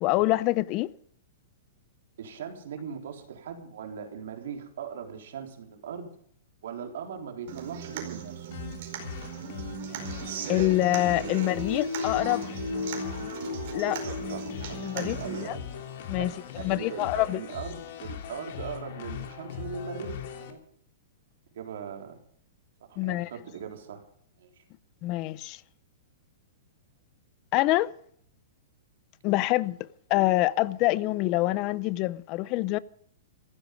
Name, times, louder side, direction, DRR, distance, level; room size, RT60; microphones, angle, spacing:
voice 1, 0.0-0.9 10.5-12.5 13.7-14.0 14.8-15.6 16.1-16.3 16.6-17.4 23.0-23.3 25.0-25.6 27.5-27.9 29.2-29.8 30.1-32.8, left 18 dB, 30° left, 0.6 m, -26 dB
voice 2, 2.2-6.1 6.6-8.5 13.9-15.8 16.2-20.6 21.5-22.2 22.9-24.0 24.4-24.6, right 7 dB, 65° right, 3.7 m, -39 dB
Human voice / Acoustic guitar, 7.5-15.5, right 2 dB, 45° right, 4.9 m, -35 dB
sound 1, 8.5-20.5, left 8 dB, 45° left, 2.9 m, -40 dB
15.5 x 15.5 x 5.2 m
hypercardioid pair, 170°, 0 cm